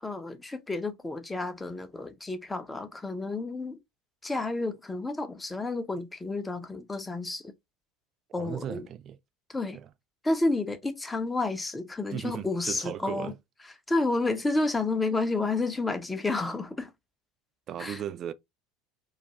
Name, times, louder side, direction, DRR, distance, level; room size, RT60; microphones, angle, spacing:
voice 1, 0.0-3.8 4.2-7.5 8.3-8.9 9.5-9.8 10.2-13.3 13.9-16.9 17.8-18.0, left 2 dB, 15° left, 0.6 m, -30 dB
voice 2, 8.4-9.2 9.7-9.9 12.1-13.3 17.7-18.3, right 9 dB, 40° right, 0.3 m, -36 dB
2.5 x 2.4 x 4.0 m
figure-of-eight pair, 70°, 0 cm